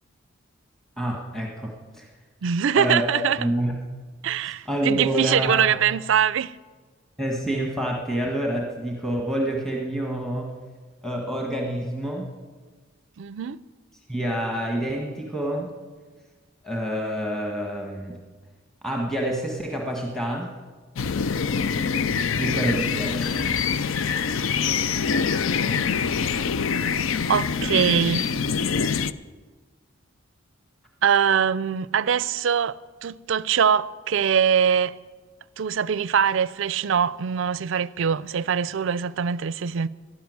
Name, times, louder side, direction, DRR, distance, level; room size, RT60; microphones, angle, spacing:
voice 1, 1.0-2.1 2.7-3.8 4.4-5.8 7.2-10.5 11.0-12.3 14.1-15.7 16.6-18.2 18.8-20.5 22.4-23.5, right 1 dB, ahead, 1.6 m, -27 dB
voice 2, 2.4-3.5 4.2-6.5 13.2-13.6 27.3-28.2 31.0-32.8 33.0-34.9 35.6-39.9, right 7 dB, 65° right, 0.4 m, -23 dB
sound 1, 21.0-29.1, left 6 dB, 75° left, 0.5 m, -25 dB
12.0 x 11.5 x 9.5 m
head